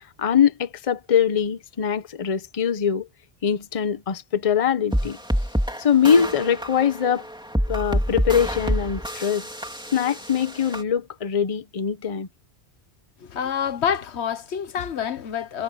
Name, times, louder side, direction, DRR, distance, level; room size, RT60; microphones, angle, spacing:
voice 1, 0.2-3.1 3.4-5.2 5.8-7.2 7.7-9.5 9.9-12.3, left 7 dB, 35° left, 0.8 m, -22 dB
sound 1, 4.9-10.8, equal, 5° right, 2.8 m, -27 dB
voice 2, 13.2-15.6, left 8 dB, 85° left, 1.2 m, -27 dB
omnidirectional pair, 1.1 m